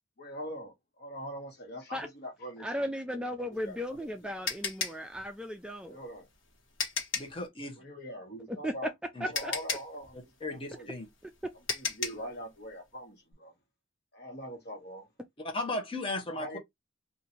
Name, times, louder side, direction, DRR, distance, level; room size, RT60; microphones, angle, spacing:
voice 1, 0.2-2.7 3.1-4.0 5.8-6.3 7.8-8.9 9.2-10.2 10.5-10.9 11.7-13.5 14.1-15.1 16.3-16.6, equal, 55° left, 1.3 m, -42 dB
voice 2, 2.6-6.0 8.5-8.8 9.2-9.5, equal, 5° right, 0.3 m, -36 dB
sound 1, 3.5-7.4 8.8-8.9 9.3-12.3, left 5 dB, 80° left, 1.2 m, -35 dB
voice 3, 7.1-7.8 9.1-9.3 10.4-11.1 15.4-16.6, left 2 dB, 25° left, 0.9 m, -36 dB
2.8 x 2.5 x 4.1 m
head